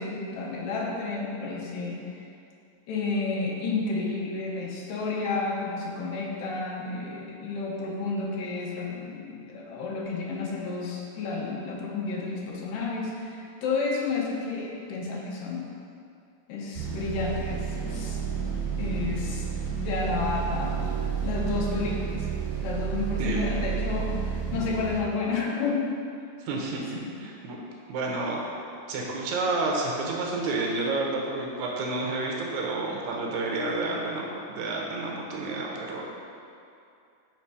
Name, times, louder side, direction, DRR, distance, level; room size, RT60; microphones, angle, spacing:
voice 1, 0.0-2.2 2.9-15.7 16.5-18.2 18.8-19.5 19.7-22.3 22.6-26.0 26.9-27.1, left 3 dB, 85° left, -2 dB, 2.5 m, -31 dB
sound 1, 16.7-25.0, right 7 dB, 55° right, 2.2 m, -31 dB
voice 2, 26.4-27.6 27.9-28.4 28.9-36.0, right 2 dB, 70° right, -2 dB, 2.0 m, -30 dB
5.5 x 4.3 x 4.7 m, 2.5 s
omnidirectional pair, 3.8 m